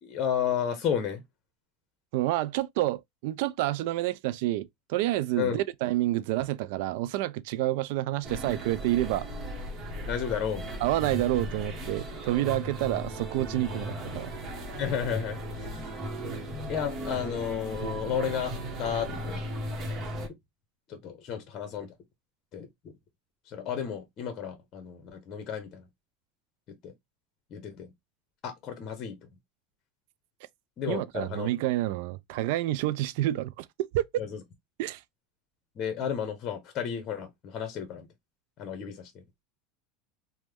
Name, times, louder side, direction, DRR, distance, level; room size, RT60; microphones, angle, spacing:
voice 1, 0.0-1.2 5.4-5.6 10.1-10.8 14.7-16.0 16.7-18.5 18.8-19.4 20.9-21.9 22.5-22.7 23.5-25.9 26.8-26.9 27.5-27.9 28.4-29.3 30.8-31.5 34.2-34.4 35.7-38.1 38.6-39.2, left 8 dB, 40° left, 0.9 m, -32 dB
voice 2, 2.1-9.3 10.8-14.3 30.9-34.0 34.8-35.0, right 15 dB, 70° right, 0.3 m, -29 dB
sound 1, 8.2-20.3, right 1 dB, 35° right, 1.0 m, -37 dB
3.0 x 2.1 x 3.3 m
supercardioid pair, 130°, 0 cm